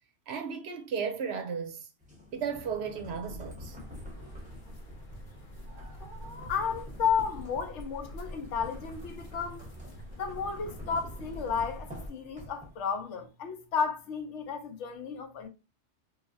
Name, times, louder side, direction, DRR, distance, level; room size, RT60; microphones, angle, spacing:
voice 1, 0.3-1.9 2.3-3.8 5.7-5.9, right 6 dB, 70° right, 0.8 m, -35 dB
sound 1, 2.0-13.0, left 1 dB, 5° right, 0.8 m, -47 dB
sound 2, 3.7-12.1, equal, 50° left, 0.9 m, -45 dB
voice 2, 6.5-9.7 10.2-15.5, left 6 dB, 75° left, 1.0 m, -33 dB
3.2 x 2.3 x 2.5 m
omnidirectional pair, 1.2 m